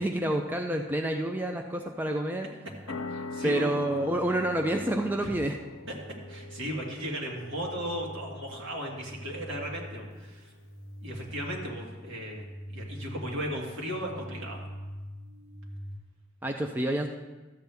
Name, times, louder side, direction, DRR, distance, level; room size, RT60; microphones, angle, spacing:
voice 1, 0.0-2.5 3.4-5.6 16.4-17.1, right 1 dB, 10° right, 3 dB, 0.4 m, -28 dB
sound 1, 2.7-16.0, equal, 35° right, 0.9 m, -45 dB
sound 2, 2.9-10.1, left 3 dB, 90° left, 0.5 m, -43 dB
voice 2, 3.1-3.7 5.2-5.3 6.3-10.5 11.0-14.6, equal, 70° right, -2 dB, 1.9 m, -36 dB
13.0 x 8.0 x 3.4 m, 1.2 s
head